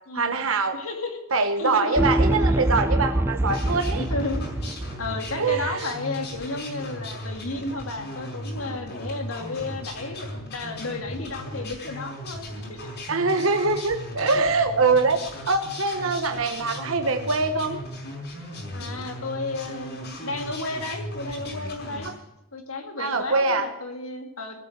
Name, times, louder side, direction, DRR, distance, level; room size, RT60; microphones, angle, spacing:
voice 1, 0.1-0.8 1.3-4.0 5.4-5.9 13.1-17.8 18.8-18.9 23.0-23.7, right 3 dB, 75° right, 6 dB, 1.2 m, -23 dB
voice 2, 0.7-1.2 1.6-2.0 3.9-4.4 5.0-12.9 13.3-13.4 18.7-22.1 22.5-24.6, left 2 dB, 85° left, 4 dB, 2.5 m, -33 dB
sound 1, 2.0-5.4, right 1 dB, 10° right, 0.4 m, -24 dB
sound 2, 3.4-22.1, left 1 dB, 55° left, 4.9 m, -37 dB
17.5 x 8.2 x 8.0 m, 0.90 s
head